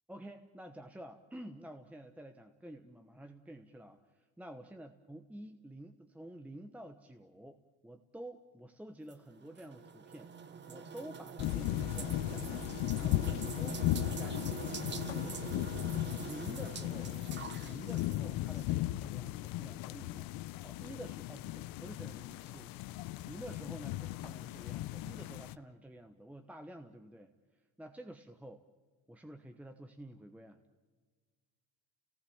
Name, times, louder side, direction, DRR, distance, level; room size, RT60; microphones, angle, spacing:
voice 1, 0.1-7.6 7.8-12.7 13.0-15.5 16.2-17.1 17.6-20.3 20.6-28.6 29.1-30.6, right 1 dB, 5° right, 7 dB, 1.0 m, -50 dB
sound 1, 9.1-18.7, right 6 dB, 25° right, 1.2 m, -44 dB
sound 2, 11.4-25.6, left 16 dB, 55° left, 0.7 m, -37 dB
30.0 x 18.5 x 7.2 m, 1.5 s
cardioid pair, 125°, 41 cm